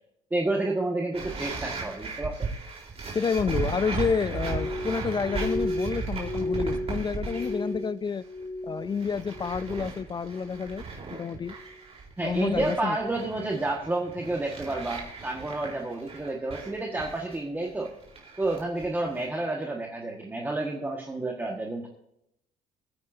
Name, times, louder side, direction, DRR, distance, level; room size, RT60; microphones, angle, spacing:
voice 1, 0.3-2.5 12.2-17.9 18.4-21.9, right 2 dB, 10° right, 0 dB, 1.6 m, -30 dB
sound 1, 1.1-7.8 8.0-8.4 8.8-19.3, right 4 dB, 35° right, 3.8 m, -37 dB
voice 2, 3.1-8.2 8.6-10.8 11.1-11.5 12.2-13.0, left 6 dB, 25° left, 18 dB, 0.3 m, -29 dB
Glass, 4.4-9.0 9.2-9.9 10.3-10.8 11.4-11.7, left 1 dB, 45° left, 4.0 m, -34 dB
21.5 x 9.5 x 2.7 m, 0.80 s
cardioid pair, 110°, 17 cm